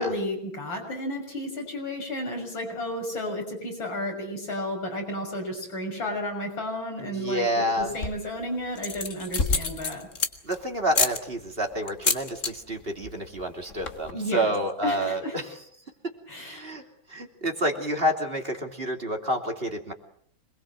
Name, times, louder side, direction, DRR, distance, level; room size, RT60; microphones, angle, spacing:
voice 1, 0.0-7.5 7.8-10.0 14.1-14.4 14.8-15.4 16.3-16.8, left 1 dB, 85° left, 2 dB, 7.1 m, -32 dB
voice 2, 7.0-8.0 10.4-15.6 16.0-16.1 16.4-16.8 17.1-19.9, equal, 30° right, 4 dB, 3.0 m, -29 dB
sound 1, 7.8-8.3 8.7-10.5 10.9-11.2 11.9-12.5 12.8-13.1 13.4-13.5 13.7-14.1, left 4 dB, 40° left, 2.0 m, -27 dB
26.5 x 20.5 x 7.7 m, 0.66 s
omnidirectional pair, 2.1 m